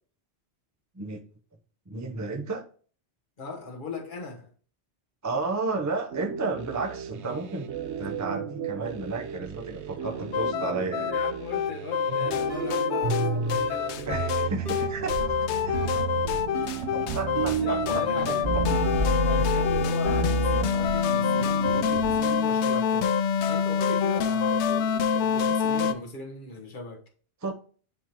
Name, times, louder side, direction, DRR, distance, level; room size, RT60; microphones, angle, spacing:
voice 1, 1.9-2.7 5.2-7.7 8.0-11.1 14.1-15.2 15.6-15.8 16.9-18.3 19.4-19.5 27.4-27.5, right 3 dB, 20° right, 0.6 m, -32 dB
voice 2, 3.4-4.5 10.0-14.4 17.4-18.5 19.2-23.2 23.5-27.0, left 3 dB, 50° left, 1.4 m, -39 dB
sound 1, 6.1-22.4, right 7 dB, 85° right, 1.0 m, -36 dB
sound 2, 10.3-25.9, left 6 dB, 85° left, 0.9 m, -26 dB
sound 3, 12.1-19.6 20.0-20.8, right 2 dB, 50° right, 1.8 m, -30 dB
10.0 x 3.7 x 2.9 m
omnidirectional pair, 1.1 m